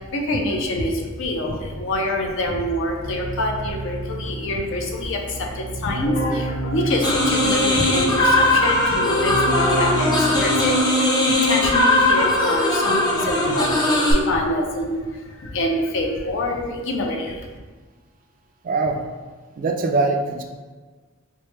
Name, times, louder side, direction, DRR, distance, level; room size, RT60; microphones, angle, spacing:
voice 1, 0.0-17.5, left 1 dB, 65° left, 1 dB, 0.5 m, -26 dB
Keyboard (musical), 2.5-10.8, right 2 dB, 50° left, 0.9 m, -30 dB
sound 1, 7.0-14.1, left 1 dB, 20° left, 0.5 m, -19 dB
voice 2, 13.5-13.8 18.6-19.0 19.6-20.4, right 3 dB, 40° right, 4 dB, 0.3 m, -23 dB
4.3 x 2.1 x 3.1 m, 1.4 s
head